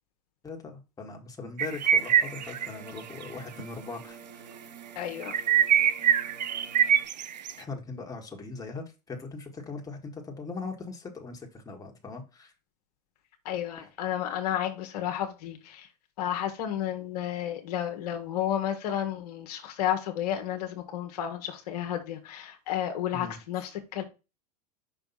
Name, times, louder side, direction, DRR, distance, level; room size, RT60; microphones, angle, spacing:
voice 1, 0.4-4.2 7.6-12.5 13.8-13.9 23.1-23.4, left 4 dB, 15° left, 1.6 m, -40 dB
sound 1, 1.6-2.7 3.0-3.2 3.6-3.7 5.2-7.5, right 9 dB, 85° right, 0.5 m, -23 dB
sound 2, 1.8-7.0, right 5 dB, 65° right, 3.2 m, -49 dB
voice 2, 4.9-5.4 13.4-15.9 16.2-24.0, left 11 dB, 65° left, 1.2 m, -32 dB
5.6 x 3.4 x 5.5 m
hypercardioid pair, 95°, 21 cm